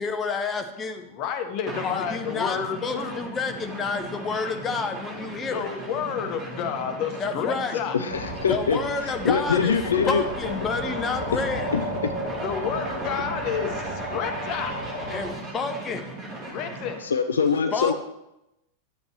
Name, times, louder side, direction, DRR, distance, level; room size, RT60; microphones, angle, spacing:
voice 1, 0.0-1.0 1.8-5.7 7.2-7.8 8.5-9.8 10.1-11.7 15.1-16.1 17.7-17.9, left 4 dB, 20° left, 6 dB, 0.9 m, -29 dB
voice 2, 1.1-3.2 5.5-8.0 11.2-11.3 12.4-14.8 16.4-17.0, left 7 dB, 40° left, 7 dB, 1.1 m, -30 dB
sound 1, 1.7-17.1, right 2 dB, 25° right, 2.5 m, -37 dB
voice 3, 7.9-8.8 9.2-10.2 11.3-11.4 11.7-12.1 17.0-17.9, left 6 dB, 70° left, 7 dB, 0.5 m, -23 dB
sound 2, 8.1-15.3, right 1 dB, 85° right, 2.7 m, -34 dB
11.5 x 7.8 x 3.1 m, 0.88 s
figure-of-eight pair, 90°, 0 cm